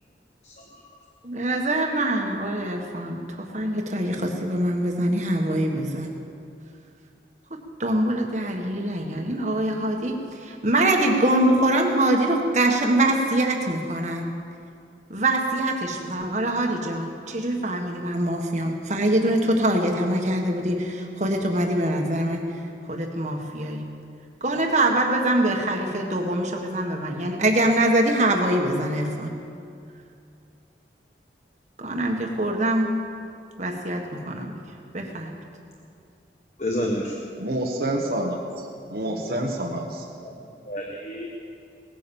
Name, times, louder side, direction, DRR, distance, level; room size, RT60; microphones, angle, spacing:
voice 1, 1.2-6.1 7.8-10.2 10.4-14.3 15.1-22.4 22.9-23.8 24.4-29.3 31.8-32.9 33.6-34.6 34.9-35.3, right 1 dB, 40° right, 2 dB, 1.6 m, -24 dB
voice 2, 36.6-37.1 39.3-39.4 40.2-40.3 40.6-41.3, equal, 40° left, 0 dB, 1.2 m, -29 dB
voice 3, 37.4-38.4 38.9-40.1, right 1 dB, 55° right, -1 dB, 1.3 m, -27 dB
18.5 x 10.0 x 7.1 m, 2.5 s
head